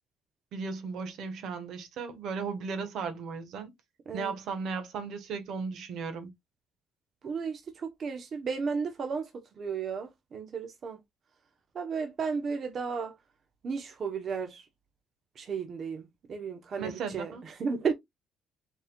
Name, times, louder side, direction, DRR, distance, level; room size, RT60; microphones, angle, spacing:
voice 1, 0.5-3.7 4.1-6.3 16.8-17.4, right 5 dB, 65° right, 1.2 m, -36 dB
voice 2, 7.2-11.0 11.7-13.1 13.6-14.6 15.4-17.9, right 5 dB, 40° right, 0.9 m, -34 dB
5.2 x 3.7 x 2.3 m
cardioid pair, 115°, 0 cm